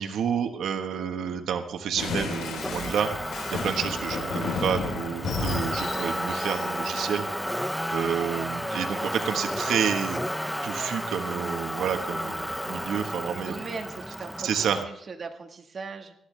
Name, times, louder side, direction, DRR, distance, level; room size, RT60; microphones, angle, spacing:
voice 1, 0.0-7.3 7.9-10.2 10.6-13.5 14.4-14.8, right 8 dB, 80° right, 6 dB, 1.3 m, -29 dB
sound 1, 2.0-7.1, left 4 dB, 80° left, 3.8 m, -33 dB
Motor vehicle (road), 2.3-14.8, equal, ahead, 0.4 m, -32 dB
voice 2, 13.2-16.1, right 4 dB, 40° right, 3 dB, 1.6 m, -39 dB
19.5 x 14.0 x 3.4 m, 0.75 s
cardioid pair, 135°, 0 cm